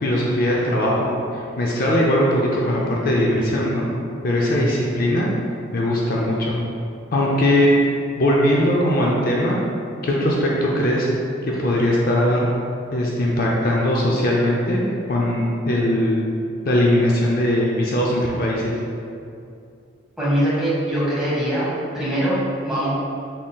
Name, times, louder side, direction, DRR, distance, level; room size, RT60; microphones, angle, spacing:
voice 1, 0.0-3.9 4.2-5.3 5.7-6.6 7.1-7.7 8.2-9.6 10.0-11.1 11.4-12.5 12.9-14.8 15.1-16.2 16.6-18.8, left 1 dB, 50° left, -3 dB, 0.5 m, -20 dB
voice 2, 20.2-21.7 21.9-22.9, right 1 dB, 5° right, -10 dB, 1.3 m, -22 dB
5.5 x 3.7 x 2.3 m, 2.5 s
head